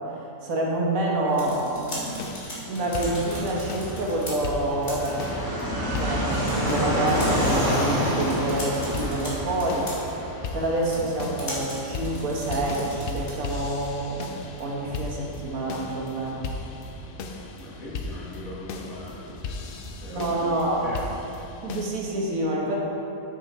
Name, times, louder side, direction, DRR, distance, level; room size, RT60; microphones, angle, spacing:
voice 1, 0.0-2.1 2.7-5.2 5.8-9.9 10.5-14.2 14.6-16.4 20.1-20.8 21.6-22.8, right 1 dB, 70° right, -3 dB, 1.5 m, -27 dB
sound 1, 1.1-13.6, equal, 50° left, 1.9 m, -39 dB
sound 2, 2.2-21.9, left 4 dB, 85° left, 0.5 m, -38 dB
Fixed-wing aircraft airplane, 2.8-21.2, equal, 15° right, 1.1 m, -31 dB
voice 2, 17.6-21.1, left 1 dB, 70° left, -6 dB, 1.9 m, -40 dB
6.7 x 6.3 x 4.2 m, 2.8 s
omnidirectional pair, 1.5 m